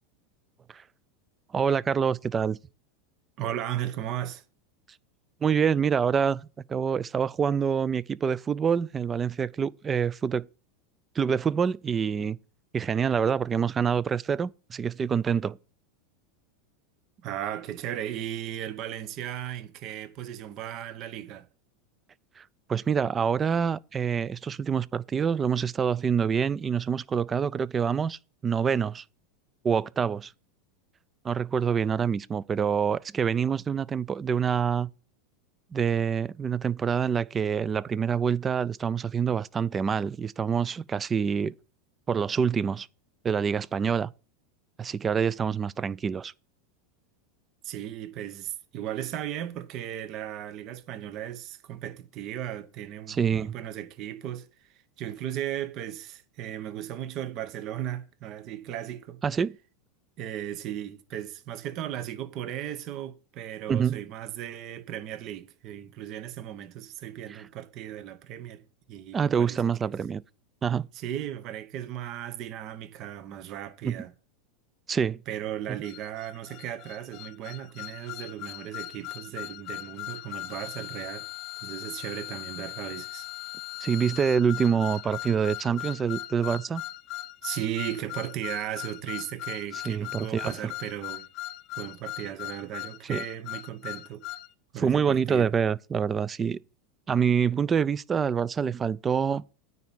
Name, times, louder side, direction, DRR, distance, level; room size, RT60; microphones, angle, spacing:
voice 1, 1.5-2.6 5.4-6.4 6.7-10.5 11.2-12.4 12.7-15.6 22.4-22.5 22.7-29.0 29.6-30.3 31.2-34.9 35.7-41.5 42.1-42.9 43.2-44.1 44.8-46.3 53.1-53.5 59.2-59.5 63.7-64.0 67.3-67.4 69.1-70.2 70.6-70.9 73.8-74.0 74.9-75.2 83.8-86.8 89.9-90.5 93.1-93.2 94.8-96.6 97.1-99.4, right 7 dB, 25° right, 0.4 m, -26 dB
voice 2, 3.4-4.4 17.2-21.5 47.6-59.2 60.2-69.9 70.9-74.1 75.3-81.3 81.6-83.3 87.4-91.3 91.7-94.3 94.7-95.5, right 11 dB, 50° right, 0.8 m, -36 dB
sound 1, 75.8-94.5, left 16 dB, 50° left, 0.5 m, -39 dB
9.3 x 4.1 x 7.3 m
hypercardioid pair, 100°, 0 cm